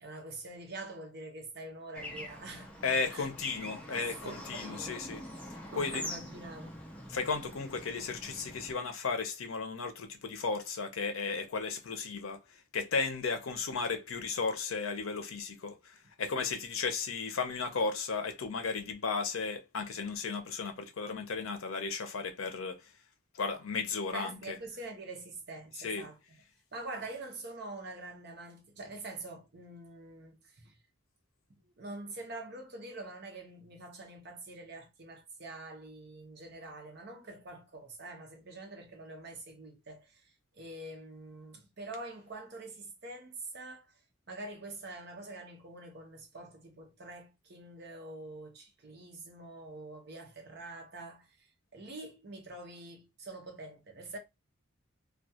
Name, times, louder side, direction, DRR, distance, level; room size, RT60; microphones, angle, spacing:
voice 1, 0.0-2.8 3.1-3.3 3.9-5.0 5.7-6.8 24.1-26.4 26.7-30.8 31.5-44.0 44.3-54.2, right 2 dB, 50° right, 0.7 m, -45 dB
Bird / Traffic noise roadway noise, 1.9-8.7, left 1 dB, 5° left, 0.4 m, -44 dB
voice 2, 2.8-5.2 5.8-6.0 7.1-12.4 12.7-22.8 23.4-24.6 25.8-26.1, left 4 dB, 80° left, 0.6 m, -34 dB
2.2 x 2.2 x 2.7 m
head